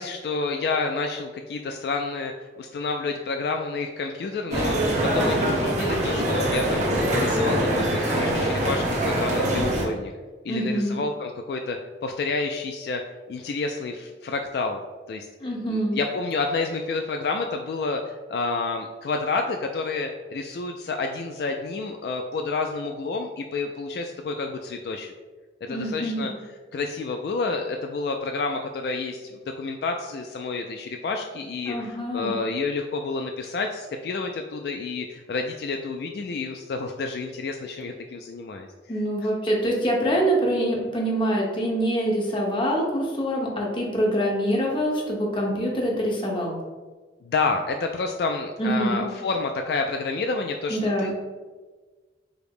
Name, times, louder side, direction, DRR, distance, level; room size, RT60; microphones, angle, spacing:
voice 1, 0.0-2.3 2.6-10.1 10.4-11.8 12.0-13.0 13.3-14.8 15.1-15.3 15.7-18.0 18.3-25.1 25.7-26.3 26.7-38.7 47.2-51.3, left 3 dB, 60° left, 4 dB, 0.3 m, -29 dB
sound 1, 4.5-9.9, right 1 dB, 40° right, 0.9 m, -23 dB
voice 2, 10.5-11.0 15.4-16.0 25.7-26.3 31.7-32.3 38.9-46.6 48.6-49.1 50.7-51.1, equal, 30° left, -2 dB, 0.9 m, -25 dB
5.0 x 2.1 x 4.8 m, 1.4 s
head